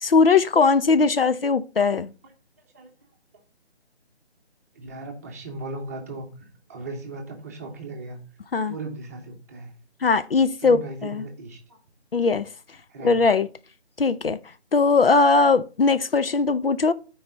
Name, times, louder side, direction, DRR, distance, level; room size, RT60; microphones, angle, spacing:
voice 1, 0.0-2.1 8.5-8.7 10.0-11.2 12.1-12.5 13.0-13.5 14.0-14.4 14.7-16.9, left 4 dB, 60° left, 0.6 m, -20 dB
voice 2, 4.7-6.3 6.7-8.2 8.7-9.7 10.6-11.8 12.9-13.2, right 2 dB, 15° right, 0.9 m, -37 dB
12.5 x 4.8 x 4.0 m
figure-of-eight pair, 160°, 33 cm